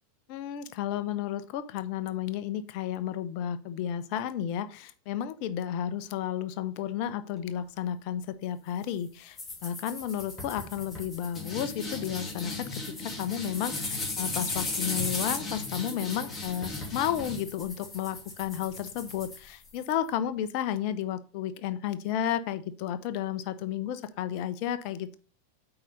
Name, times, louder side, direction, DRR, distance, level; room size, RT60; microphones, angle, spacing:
voice 1, 0.3-25.2, left 10 dB, 45° left, 12 dB, 0.7 m, -32 dB
sound 1, 9.4-19.9, left 2 dB, 15° left, 3.0 m, -36 dB
8.4 x 3.9 x 5.2 m, 0.38 s
figure-of-eight pair, 90°, 0 cm